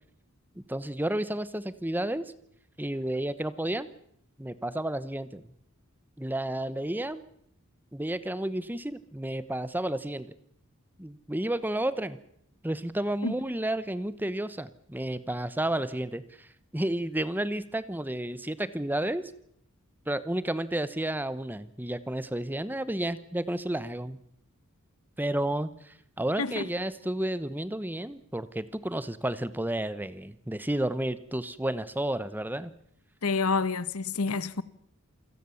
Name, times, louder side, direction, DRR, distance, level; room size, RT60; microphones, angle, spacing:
voice 1, 0.6-2.3 2.8-3.9 4.4-5.4 6.2-7.2 7.9-10.3 11.0-12.2 12.6-16.5 16.7-19.3 20.1-24.2 25.2-32.7, right 1 dB, 10° right, 0.9 m, -31 dB
voice 2, 26.4-26.7 33.2-34.6, left 4 dB, 80° left, 1.0 m, -28 dB
27.5 x 17.5 x 7.1 m
head